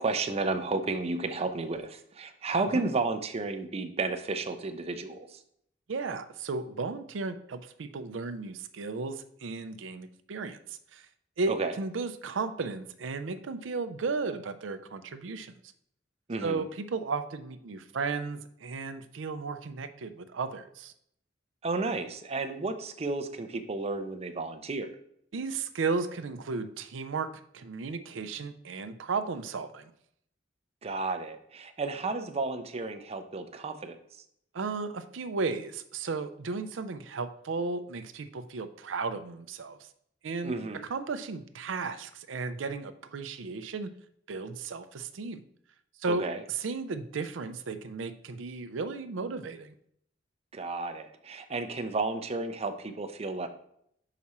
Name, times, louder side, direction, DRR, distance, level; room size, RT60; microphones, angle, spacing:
voice 1, 0.0-5.4 11.5-11.7 16.3-16.6 21.6-24.9 30.8-34.0 40.4-40.8 46.1-46.4 50.5-53.5, right 3 dB, 35° right, 7 dB, 0.5 m, -32 dB
voice 2, 5.9-11.1 11.4-15.5 16.4-20.9 25.3-29.9 34.5-39.8 40.2-40.6 40.9-43.9 44.3-45.4 46.0-46.3 46.6-49.7, right 4 dB, 80° right, 9 dB, 0.5 m, -34 dB
5.9 x 4.9 x 4.2 m, 0.69 s
head